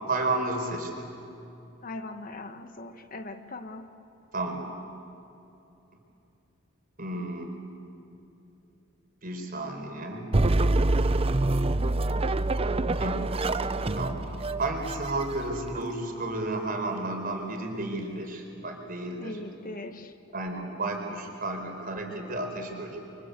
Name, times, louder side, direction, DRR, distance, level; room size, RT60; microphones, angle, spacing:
voice 1, 0.1-1.1 4.3-4.7 7.0-7.5 9.2-10.4 13.0-13.3 13.9-19.4 20.3-23.0, right 2 dB, 45° right, 3 dB, 4.5 m, -32 dB
voice 2, 1.8-3.9 19.2-20.1, left 2 dB, 45° left, 8 dB, 1.2 m, -40 dB
sound 1, 10.3-15.8, right 2 dB, 30° right, 0.6 m, -26 dB
29.5 x 24.0 x 8.3 m, 2.8 s
head